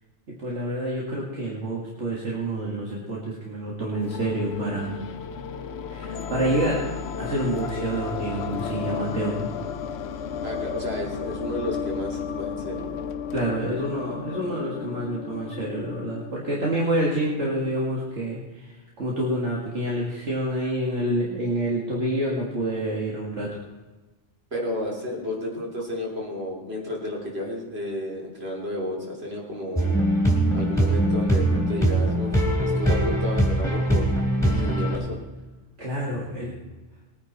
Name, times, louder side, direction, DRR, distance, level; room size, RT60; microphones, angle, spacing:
voice 1, 0.4-5.0 5.9-6.8 7.2-9.5 13.3-23.6 35.8-36.5, right 1 dB, 75° right, -4 dB, 2.4 m, -28 dB
sound 1, 3.9-16.9, left 6 dB, 65° left, 1.0 m, -33 dB
voice 2, 10.4-12.9 24.5-29.9 30.5-34.0 34.4-35.2, left 1 dB, 60° right, -2 dB, 3.5 m, -32 dB
sound 2, 29.8-35.0, right 1 dB, 5° left, 3.5 m, -22 dB
20.5 x 9.7 x 4.2 m, 1.2 s
omnidirectional pair, 1.2 m